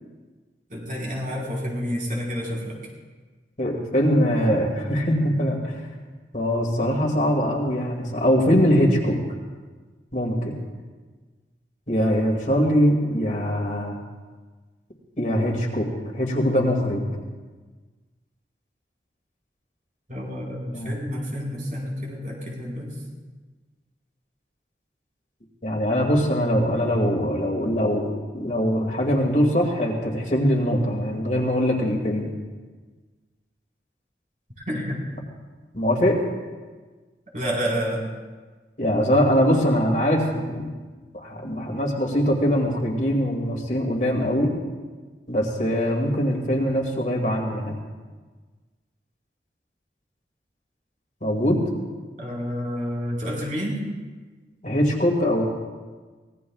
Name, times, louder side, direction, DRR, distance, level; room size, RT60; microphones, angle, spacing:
voice 1, 0.7-2.8 20.1-22.9 34.7-35.0 37.3-38.0 52.2-53.8, equal, 45° right, -4 dB, 4.6 m, -29 dB
voice 2, 3.6-5.8 6.3-9.2 10.1-10.6 11.9-14.0 15.2-15.9 16.1-17.1 20.7-20.9 25.6-28.1 28.3-32.3 35.7-36.2 38.8-40.7 41.1-44.5 45.3-47.8 51.2-51.6 54.6-55.4, equal, 45° left, 0 dB, 2.3 m, -22 dB
24.5 x 18.5 x 2.4 m, 1.4 s
head